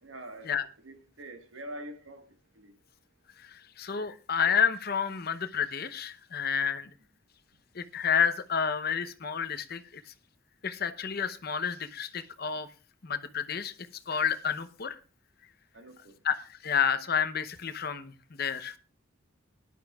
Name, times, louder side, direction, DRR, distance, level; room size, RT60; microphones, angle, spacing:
voice 1, 0.0-2.7 15.7-16.2, right 1 dB, 75° right, 1.5 m, -45 dB
voice 2, 3.8-6.9 7.8-9.8 10.6-12.7 13.0-13.7 14.1-15.0 16.2-16.4 16.6-18.1 18.4-18.7, left 7 dB, 50° left, 0.8 m, -29 dB
19.0 x 11.0 x 2.3 m
head